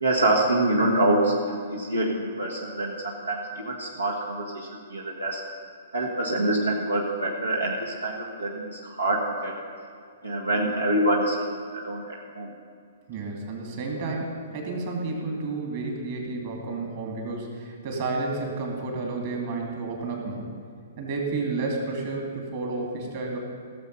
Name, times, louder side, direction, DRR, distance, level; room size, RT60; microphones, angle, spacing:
voice 1, 0.0-5.4 5.9-9.5 10.2-11.4 11.7-12.5, right 1 dB, 80° right, -2 dB, 1.5 m, -26 dB
voice 2, 13.1-20.5 21.0-23.4, right 3 dB, 40° right, 0 dB, 2.6 m, -31 dB
17.0 x 7.3 x 5.5 m, 2.3 s
figure-of-eight pair, 115°, 0 cm